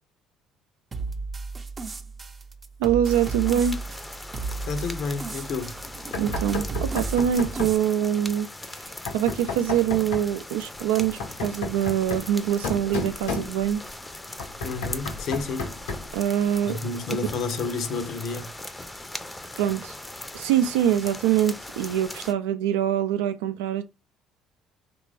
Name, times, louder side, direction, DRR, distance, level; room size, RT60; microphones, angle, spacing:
sound 1, 0.9-7.8, right 4 dB, 30° right, 0.6 m, -34 dB
voice 1, 2.8-3.8 6.2-8.5 9.1-13.8 16.1-16.8 19.6-19.9 20.3-23.8, right 10 dB, 85° right, 0.4 m, -24 dB
sound 2, 3.0-22.3, left 1 dB, 10° left, 0.5 m, -40 dB
voice 2, 4.7-5.8 14.6-15.7 16.7-18.5, left 4 dB, 65° left, 0.7 m, -30 dB
Knock, 6.1-7.8 9.1-10.3 11.0-13.9 14.4-16.2, left 4 dB, 90° left, 1.0 m, -33 dB
3.2 x 2.5 x 3.2 m
supercardioid pair, 70°, 0 cm